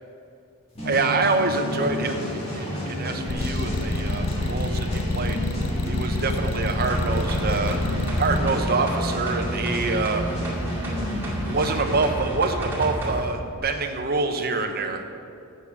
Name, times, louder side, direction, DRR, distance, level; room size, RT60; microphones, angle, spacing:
sound 1, 0.8-12.1, equal, 30° left, 2.0 m, -31 dB
voice 1, 0.8-5.4 5.9-7.8 8.2-10.2 11.5-15.0, right 3 dB, 45° right, 5 dB, 0.8 m, -26 dB
sound 2, 3.3-8.4, left 2 dB, 70° left, 0.6 m, -26 dB
sound 3, 6.9-13.2 13.6-13.7, equal, 10° right, 2.2 m, -31 dB
7.4 x 6.6 x 8.1 m, 2.5 s
head